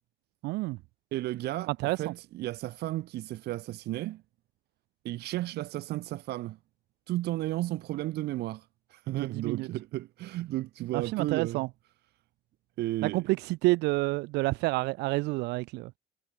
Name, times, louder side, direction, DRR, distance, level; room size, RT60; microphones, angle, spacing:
voice 1, 0.4-0.8 1.7-2.1 9.2-9.7 10.9-11.7 13.0-16.0, right 22 dB, 90° right, 0.8 m, -29 dB
voice 2, 1.1-4.2 5.0-6.6 7.1-8.6 8.9-11.6 12.8-13.3, right 16 dB, 75° right, 1.4 m, -33 dB
cardioid pair, 110°, 17 cm